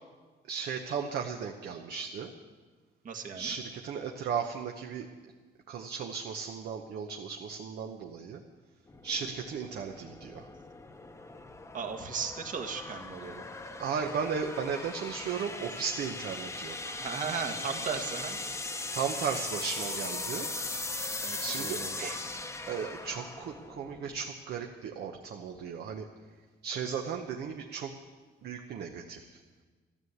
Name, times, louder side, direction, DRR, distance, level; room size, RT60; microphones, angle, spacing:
voice 1, 0.5-2.3 3.3-5.1 5.7-8.4 9.0-10.5 13.8-17.0 18.9-20.5 21.4-22.1 22.7-26.1 26.6-28.0 28.4-29.4, right 6 dB, 70° right, 3 dB, 1.1 m, -35 dB
voice 2, 3.0-3.5 11.7-13.5 16.9-18.4 21.2-22.2, right 6 dB, 50° right, 5 dB, 1.7 m, -36 dB
sound 1, 8.9-24.3, left 2 dB, 15° left, 0.9 m, -39 dB
13.0 x 12.5 x 8.0 m, 1.4 s
cardioid pair, 135°, 17 cm